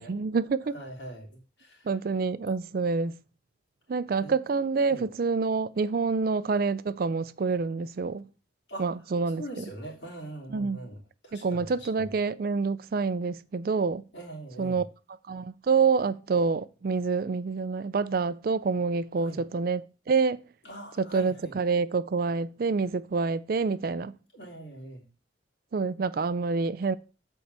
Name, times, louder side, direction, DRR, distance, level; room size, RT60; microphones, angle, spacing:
voice 1, 0.0-0.7 1.9-3.1 3.9-8.2 8.8-9.6 10.5-10.8 11.3-14.0 14.6-14.8 15.3-20.4 21.0-24.1 25.7-26.9, right 4 dB, 50° right, 0.4 m, -27 dB
voice 2, 0.7-1.9 4.2-4.3 4.9-5.0 8.7-8.9 9.4-11.0 11.2-12.1 14.1-14.8 19.2-19.4 20.6-21.5 24.3-25.0, right 1 dB, 65° left, 3.2 m, -42 dB
8.0 x 4.6 x 6.7 m
head